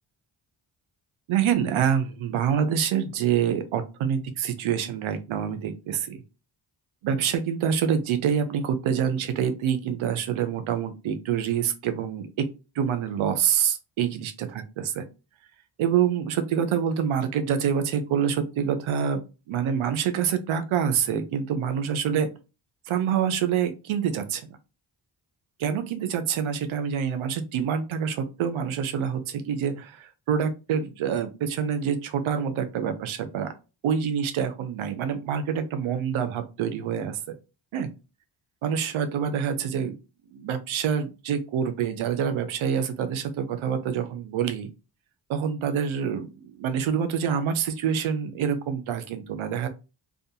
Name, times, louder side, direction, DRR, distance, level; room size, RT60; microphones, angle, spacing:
voice 1, 1.3-6.2 7.0-12.5 12.8-15.0 15.8-19.2 19.5-22.3 22.9-24.6 25.6-33.5 33.8-37.2 37.7-37.9 38.6-39.9 40.3-44.7 45.3-49.7, right 8 dB, 75° right, 9 dB, 0.6 m, -26 dB
2.4 x 2.3 x 2.7 m, 0.30 s
cardioid pair, 50°, 48 cm